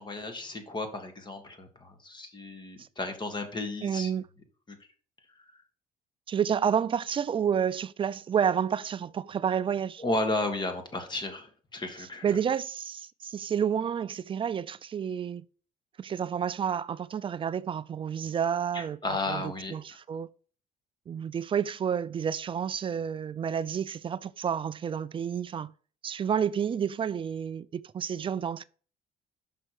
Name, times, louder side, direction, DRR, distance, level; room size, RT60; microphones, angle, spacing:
voice 1, 0.0-4.1 4.7-4.8 10.0-12.4 18.7-19.7, left 2 dB, 25° left, 1.7 m, -33 dB
voice 2, 3.8-4.2 6.3-10.0 12.2-15.4 16.0-19.0 19.3-19.4 19.7-20.3 21.1-25.7 26.0-28.6, right 8 dB, 30° right, 0.4 m, -30 dB
5.9 x 5.6 x 4.7 m
cardioid pair, 110°, 17 cm